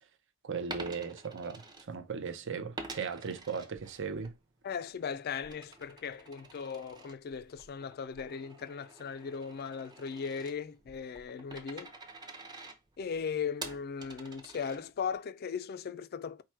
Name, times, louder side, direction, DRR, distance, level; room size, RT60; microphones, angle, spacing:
voice 1, 0.4-4.4, right 5 dB, 60° right, 0.6 m, -37 dB
Coin (dropping), 0.6-2.3 2.8-4.3 4.7-15.2, right 3 dB, 20° right, 0.6 m, -48 dB
voice 2, 4.6-11.9 13.0-16.4, left 6 dB, 50° left, 0.4 m, -38 dB
4.7 x 2.2 x 4.3 m
head